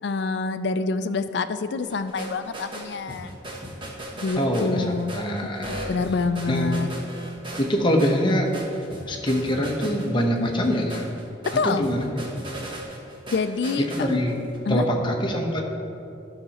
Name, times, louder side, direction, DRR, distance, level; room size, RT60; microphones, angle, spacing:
voice 1, 0.0-3.4 4.2-5.1 5.9-6.9 11.5-11.8 13.3-13.9 14.7-14.9, left 4 dB, 60° left, 10 dB, 0.4 m, -26 dB
sound 1, 1.8-14.6, right 1 dB, 25° right, 1.2 m, -38 dB
voice 2, 4.4-4.8 5.1-5.9 6.5-6.8 7.6-8.5 9.1-11.1 11.6-12.1 13.8-14.3 14.7-15.6, equal, 25° left, 0 dB, 0.9 m, -24 dB
11.5 x 5.9 x 4.3 m, 2.7 s
head